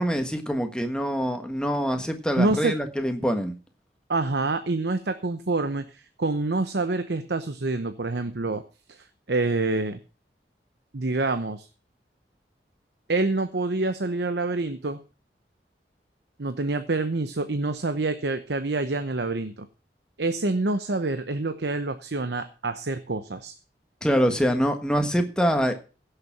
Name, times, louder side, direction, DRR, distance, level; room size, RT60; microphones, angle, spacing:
voice 1, 0.0-3.5 24.0-25.7, equal, 5° left, 1.4 m, -24 dB
voice 2, 2.4-2.8 4.1-8.6 8.9-10.0 10.9-11.7 13.1-15.0 16.4-19.7 20.2-23.5, right 2 dB, 75° right, 0.9 m, -27 dB
16.0 x 6.8 x 5.9 m
head